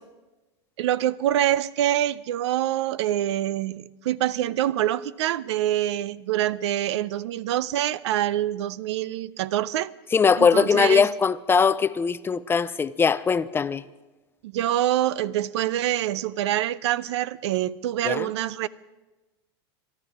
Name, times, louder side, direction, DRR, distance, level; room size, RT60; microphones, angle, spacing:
voice 1, 0.8-9.9 10.4-11.0 14.4-18.7, right 12 dB, 80° right, 0.5 m, -25 dB
voice 2, 10.1-13.8 18.0-18.3, left 6 dB, 15° left, 0.4 m, -21 dB
23.5 x 12.5 x 3.6 m
supercardioid pair, 120°, 14 cm